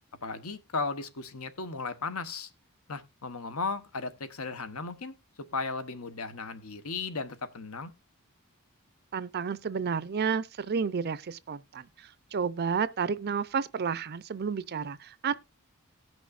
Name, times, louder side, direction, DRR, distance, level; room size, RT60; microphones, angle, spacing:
voice 1, 0.2-2.5 2.9-5.1 5.5-7.9, left 4 dB, 75° left, 1.1 m, -35 dB
voice 2, 9.1-15.4, right 6 dB, 45° right, 0.5 m, -31 dB
18.0 x 6.2 x 2.5 m
head